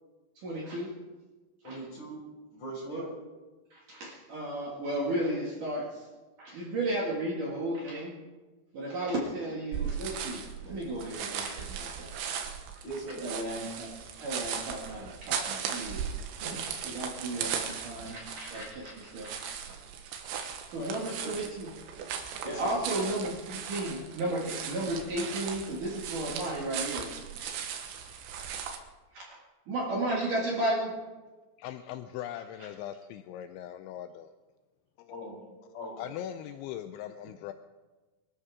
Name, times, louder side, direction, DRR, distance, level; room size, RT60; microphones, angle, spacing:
voice 1, 0.4-0.9 1.6-1.8 2.9-3.0 3.7-6.1 6.4-8.1 8.7-12.4 12.8-12.9 13.2-13.9 14.2-16.0 16.4-19.7 20.7-21.7 22.4-27.1 29.1-29.4 29.7-31.0, right 1 dB, 50° right, -4 dB, 3.0 m, -34 dB
voice 2, 1.6-2.2 2.5-3.1 12.8-13.2 20.8-21.3 22.4-22.8 35.1-35.4 35.7-36.1, right 1 dB, 55° left, -3 dB, 7.4 m, -40 dB
sound 1, 9.7-28.8, right 7 dB, 70° right, 3.4 m, -38 dB
voice 3, 31.6-34.3 35.0-35.1 36.0-37.5, left 11 dB, 85° left, 9 dB, 2.6 m, -40 dB
25.0 x 13.5 x 3.7 m, 1.2 s
omnidirectional pair, 5.9 m